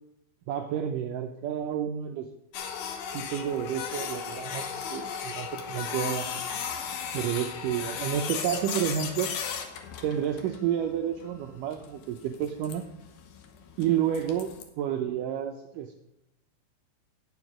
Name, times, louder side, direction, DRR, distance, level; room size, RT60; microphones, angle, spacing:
voice 1, 0.5-2.3 3.1-6.3 7.1-9.3 10.0-12.8 13.8-15.9, right 9 dB, 80° right, 4 dB, 1.9 m, -30 dB
Printer, 2.5-14.6, left 7 dB, 80° left, 2.8 m, -36 dB
9.5 x 7.1 x 6.0 m, 0.88 s
omnidirectional pair, 4.4 m